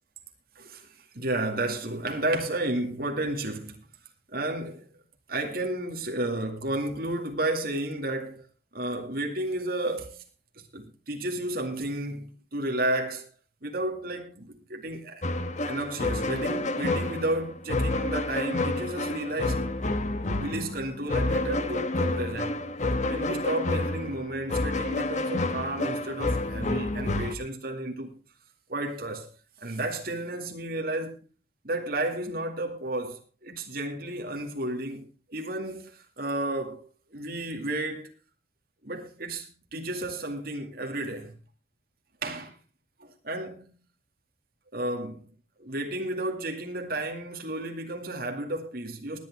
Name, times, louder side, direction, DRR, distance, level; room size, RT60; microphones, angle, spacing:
voice 1, 0.6-3.9 4.3-4.9 5.3-8.4 8.7-10.2 10.7-13.3 13.6-15.2 15.7-19.6 20.4-22.6 23.1-28.1 28.7-29.3 29.6-31.3 31.6-38.1 38.8-41.4 42.2-42.5 43.0-43.8 44.7-45.2 45.6-49.3, right 1 dB, 60° right, 2.3 m, -32 dB
sound 1, 15.2-27.3, left 2 dB, 45° left, 1.2 m, -29 dB
20.5 x 8.9 x 3.6 m
head